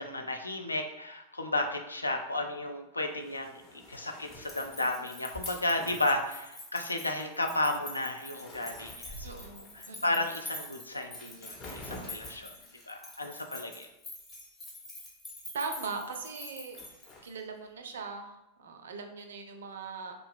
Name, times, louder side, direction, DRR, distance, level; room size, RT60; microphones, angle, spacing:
voice 1, 0.0-12.5 12.9-13.9, left 2 dB, 80° left, 4 dB, 0.3 m, -33 dB
sound 1, 3.1-7.0 7.4-7.6 7.9-10.1 10.6-10.7 11.1-13.0 16.7-17.2, left 1 dB, 35° left, 0.9 m, -49 dB
sound 2, 4.4-17.4, left 1 dB, 15° left, 1.2 m, -46 dB
voice 2, 9.2-10.2 15.5-16.8 17.2-20.1, right 4 dB, 65° right, 5 dB, 0.4 m, -40 dB
2.5 x 2.2 x 3.3 m, 0.91 s
figure-of-eight pair, 90°, 0 cm